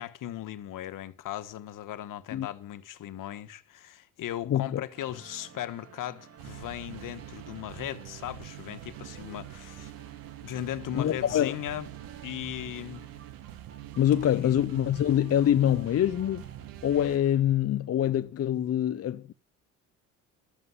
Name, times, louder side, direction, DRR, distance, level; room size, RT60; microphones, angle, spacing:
voice 1, 0.0-9.9 10.4-11.9 12.2-13.0 14.3-14.6, left 12 dB, 65° left, 1.3 m, -37 dB
voice 2, 4.5-4.8 10.9-11.5 14.0-16.5 16.8-19.3, left 11 dB, 45° left, 0.6 m, -25 dB
sound 1, 4.9-17.4, right 6 dB, 40° right, 2.1 m, -53 dB
sound 2, 6.4-17.2, right 13 dB, 80° right, 1.3 m, -45 dB
13.0 x 7.8 x 9.6 m
supercardioid pair, 70°, 34 cm